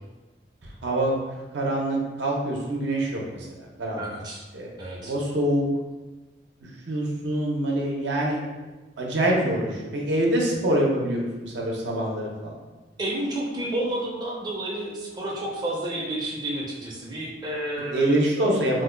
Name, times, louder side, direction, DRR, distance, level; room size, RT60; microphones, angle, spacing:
voice 1, 0.8-1.1 1.5-4.0 4.5-4.7 5.0-5.7 6.6-8.4 9.0-12.5 17.9-18.8, right 1 dB, 85° right, -1 dB, 0.6 m, -25 dB
voice 2, 4.0-4.4 4.8-5.1 13.0-18.2, right 1 dB, 25° right, -4 dB, 0.4 m, -30 dB
2.7 x 2.2 x 3.7 m, 1.2 s
head